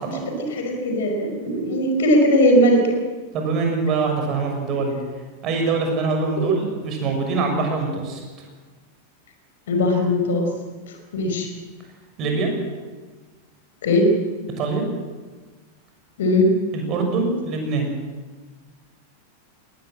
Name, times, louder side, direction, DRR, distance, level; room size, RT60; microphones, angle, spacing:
voice 1, 0.1-3.0 6.4-6.5 9.7-10.5 11.1-11.5 13.8-14.1 16.2-16.5, left 1 dB, 60° left, 4 dB, 5.2 m, -19 dB
voice 2, 3.3-5.0 5.4-8.2 12.2-12.5 14.6-14.8 16.7-17.9, right 4 dB, 35° right, 3 dB, 6.6 m, -24 dB
20.0 x 19.0 x 7.6 m, 1.3 s
figure-of-eight pair, 90°, 0 cm